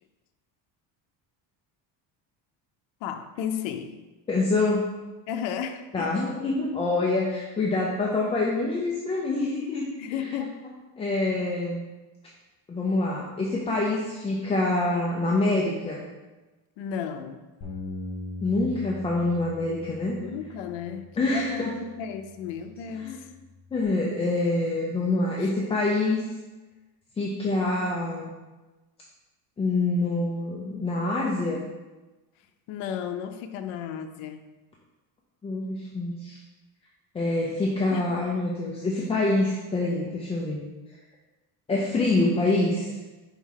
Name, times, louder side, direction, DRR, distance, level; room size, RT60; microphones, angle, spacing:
voice 1, 3.0-4.0 5.3-6.2 10.0-10.6 16.8-17.4 20.1-23.3 25.4-25.5 32.7-34.5 37.9-38.1, left 8 dB, 90° left, 8 dB, 0.6 m, -34 dB
voice 2, 4.3-4.9 5.9-9.9 11.0-11.8 12.7-16.0 18.4-20.2 21.2-21.7 23.0-23.2 23.7-26.2 27.2-28.3 29.6-31.6 35.4-36.4 37.1-40.6 41.7-42.9, left 2 dB, 15° left, -3 dB, 0.4 m, -26 dB
Bass guitar, 17.6-23.9, left 2 dB, 40° left, 1.4 m, -42 dB
4.6 x 3.7 x 5.6 m, 1.2 s
cardioid pair, 165°, 42 cm